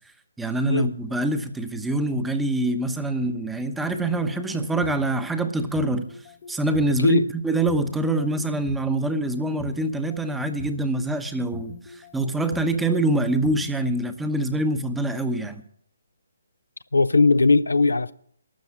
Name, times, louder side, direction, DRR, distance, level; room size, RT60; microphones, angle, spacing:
voice 1, 0.4-6.1 6.5-15.6, right 2 dB, 5° right, 0.9 m, -25 dB
sound 1, 3.9-5.1 5.6-6.9 7.5-8.8 9.4-10.8 11.4-12.7 13.3-13.9, left 5 dB, 40° left, 0.8 m, -40 dB
voice 2, 16.9-18.1, left 3 dB, 80° left, 0.5 m, -18 dB
12.5 x 7.1 x 9.8 m
figure-of-eight pair, 140°, 0 cm